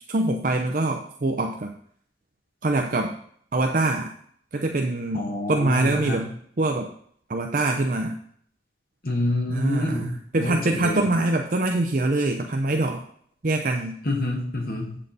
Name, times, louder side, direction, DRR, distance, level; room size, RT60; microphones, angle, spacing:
voice 1, 0.1-1.7 2.6-3.2 3.5-4.1 4.5-6.3 6.6-6.9 7.3-8.2 9.5-13.0 13.4-14.0, right 2 dB, 50° right, 3 dB, 0.6 m, -24 dB
voice 2, 5.1-6.3 9.0-11.1 14.0-15.0, left 1 dB, 55° left, 1 dB, 1.7 m, -28 dB
8.0 x 7.3 x 4.1 m, 0.62 s
head